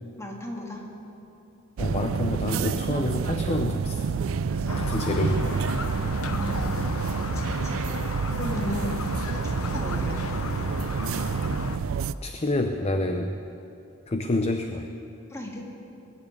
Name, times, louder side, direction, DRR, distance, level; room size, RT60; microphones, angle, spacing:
voice 1, 0.2-0.8 4.5-5.2 6.3-7.7 8.4-8.9 9.4-10.6 15.3-15.7, left 1 dB, 15° left, -1 dB, 2.1 m, -36 dB
voice 2, 1.8-4.0 4.8-5.7 8.0-8.1 12.2-13.3 14.1-14.9, left 1 dB, 30° left, 6 dB, 0.6 m, -28 dB
sound 1, 1.8-12.1, right 6 dB, 65° right, 0.4 m, -29 dB
Squeak, 4.7-11.8, left 3 dB, 85° left, 1.0 m, -33 dB
21.0 x 7.1 x 9.5 m, 2.9 s
head